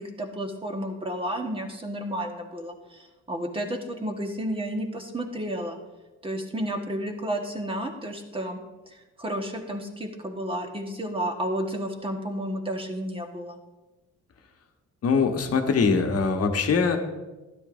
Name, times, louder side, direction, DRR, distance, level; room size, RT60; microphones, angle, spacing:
voice 1, 0.0-5.8 6.2-8.6 9.2-13.6, right 1 dB, 20° right, 3 dB, 1.4 m, -31 dB
voice 2, 15.0-17.0, left 5 dB, 55° left, 4 dB, 1.2 m, -22 dB
12.5 x 10.0 x 2.6 m, 1.1 s
cardioid pair, 90°, 30 cm